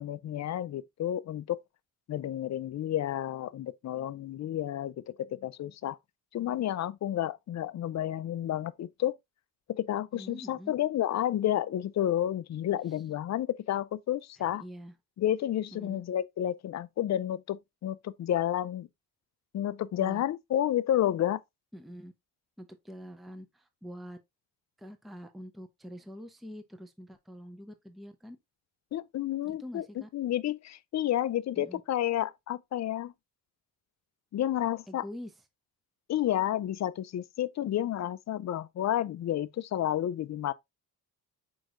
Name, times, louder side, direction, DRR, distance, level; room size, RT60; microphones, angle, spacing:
voice 1, 0.0-1.6 2.1-6.0 6.3-9.1 9.7-14.6 15.2-18.9 19.5-21.4 28.9-29.8 30.1-33.1 34.3-35.0 36.1-40.5, left 12 dB, 45° left, 0.4 m, -31 dB
voice 2, 10.1-10.7 14.4-14.9 15.7-16.0 20.0-20.2 21.7-22.1 22.6-24.2 24.8-28.4 29.4-30.1 31.6-31.8 34.9-35.3, equal, ahead, 0.6 m, -45 dB
4.6 x 4.6 x 2.5 m
cardioid pair, 95°, 39 cm